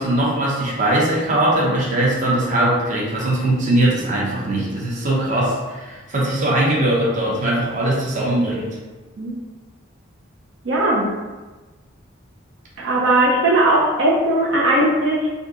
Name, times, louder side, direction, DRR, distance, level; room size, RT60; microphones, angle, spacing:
voice 1, 0.0-8.8, right 1 dB, 40° right, -4 dB, 0.9 m, -20 dB
voice 2, 10.6-11.1 12.8-15.3, right 1 dB, 70° right, -4 dB, 0.7 m, -18 dB
3.7 x 2.7 x 3.8 m, 1.2 s
head